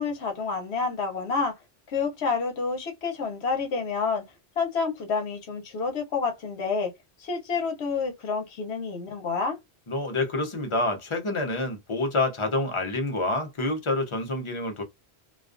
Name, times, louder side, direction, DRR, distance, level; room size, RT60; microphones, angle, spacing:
voice 1, 0.0-1.6 1.9-4.2 4.6-6.9 7.2-9.6, left 4 dB, 80° left, 1.0 m, -28 dB
voice 2, 9.9-14.8, left 2 dB, 40° left, 0.5 m, -27 dB
2.3 x 2.3 x 2.4 m
omnidirectional pair, 1.1 m